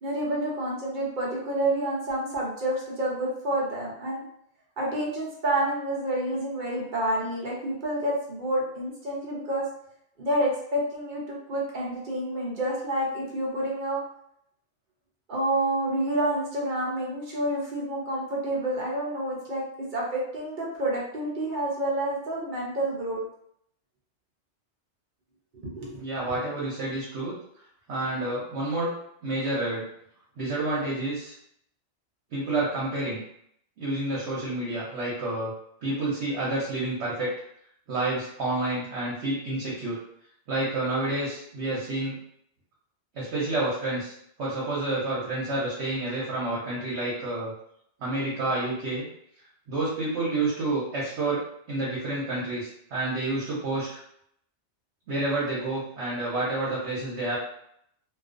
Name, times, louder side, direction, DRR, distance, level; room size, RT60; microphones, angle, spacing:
voice 1, 0.0-4.2 4.8-9.6 10.2-14.0 15.3-19.6 19.9-23.2 25.6-26.0 26.3-26.4, right 1 dB, 50° right, -4 dB, 0.7 m, -29 dB
voice 2, 26.0-27.3 27.9-28.9 29.2-29.9 30.4-31.3 32.3-33.2 33.8-35.5 35.8-37.3 37.9-40.0 40.5-42.2 43.1-44.1 44.4-47.5 48.0-49.1 49.7-51.4 51.7-54.0 55.1-57.4, right 2 dB, 70° right, -7 dB, 1.0 m, -29 dB
2.4 x 2.3 x 2.4 m, 0.70 s
omnidirectional pair, 1.2 m